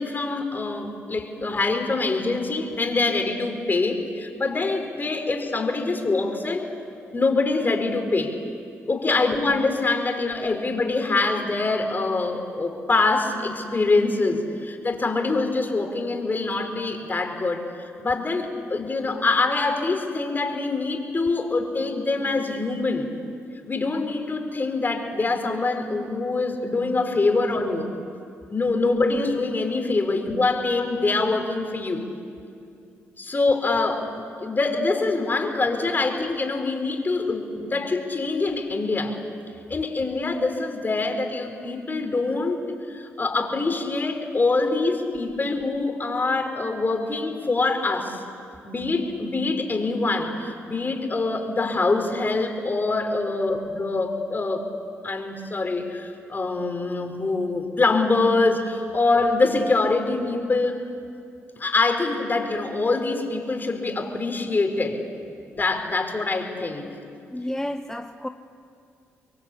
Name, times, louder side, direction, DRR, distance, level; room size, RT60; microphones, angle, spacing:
voice 1, 0.0-6.7 7.1-8.4 8.9-23.1 23.7-27.9 28.5-32.1 33.2-39.2 39.7-48.2 48.6-54.7 55.0-60.8 61.6-65.0 65.5-66.9, left 3 dB, 35° left, 5 dB, 4.4 m, -24 dB
voice 2, 53.3-53.6 67.3-68.3, left 1 dB, 10° left, 7 dB, 1.0 m, -31 dB
25.5 x 22.5 x 8.6 m, 2.4 s
supercardioid pair, 55°, 6 cm